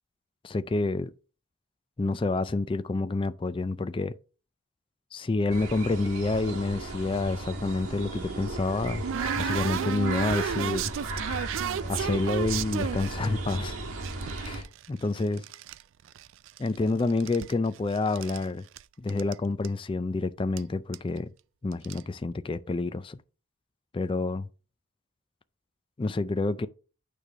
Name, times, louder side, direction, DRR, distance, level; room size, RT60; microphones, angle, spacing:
voice 1, 0.4-1.1 2.0-4.1 5.1-9.0 9.3-10.9 11.9-13.8 14.4-15.4 16.6-18.6 19.0-21.3 21.6-23.2 23.9-24.5 26.0-26.7, left 3 dB, 25° left, 0.3 m, -28 dB
sound 1, 5.5-14.6, right 2 dB, 85° right, 1.5 m, -35 dB
sound 2, 8.1-13.6 14.0-15.8 16.1-16.8 17.1-18.4 18.8-18.9 19.1-19.3 19.6-19.7 20.6-20.7 20.9-21.2 21.7-22.0, right 8 dB, 60° right, 0.3 m, -33 dB
8.8 x 3.3 x 6.1 m
head